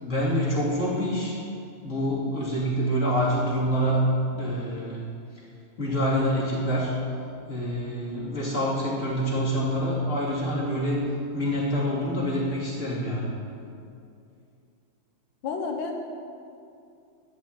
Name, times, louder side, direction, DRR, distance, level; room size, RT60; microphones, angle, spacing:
voice 1, 0.0-1.4 1.8-4.1 4.3-5.0 5.8-6.9 7.5-11.0 11.3-13.3, equal, 35° left, -6 dB, 2.9 m, -26 dB
voice 2, 15.4-16.0, left 4 dB, 65° left, 3 dB, 1.9 m, -30 dB
11.5 x 5.8 x 8.8 m, 2.5 s
omnidirectional pair, 2.4 m